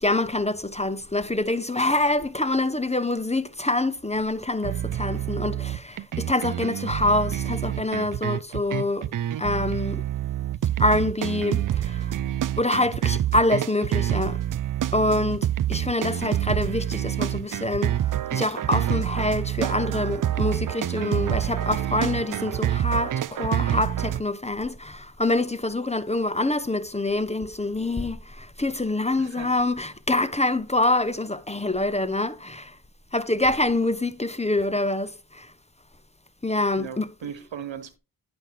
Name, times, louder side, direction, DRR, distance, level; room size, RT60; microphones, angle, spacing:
voice 1, 0.0-9.1 9.4-10.0 10.8-12.1 12.6-14.4 14.9-18.0 18.3-32.7 33.1-35.5 36.4-37.1, left 2 dB, 15° left, 0.9 m, -25 dB
sound 1, 4.6-24.2, right 11 dB, 50° right, 0.4 m, -27 dB
voice 2, 29.2-29.5 36.7-38.0, right 8 dB, 90° right, 1.2 m, -38 dB
10.5 x 5.3 x 4.4 m
cardioid pair, 40°, 44 cm